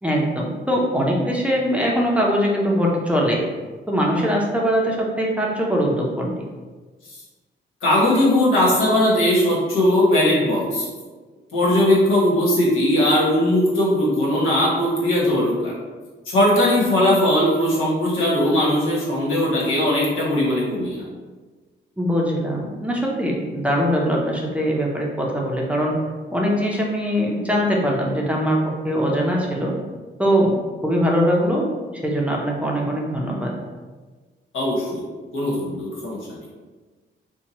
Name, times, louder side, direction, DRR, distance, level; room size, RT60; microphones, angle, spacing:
voice 1, 0.0-3.4 3.9-6.3 22.0-26.0 26.3-29.7 30.2-30.5 30.8-33.5, equal, 5° right, -3 dB, 0.6 m, -22 dB
voice 2, 7.8-10.9 11.5-15.7 16.3-21.0 34.5-35.0 35.3-36.2, left 1 dB, 90° left, -5 dB, 1.2 m, -19 dB
2.8 x 2.2 x 4.0 m, 1.3 s
cardioid pair, 105°, 20 cm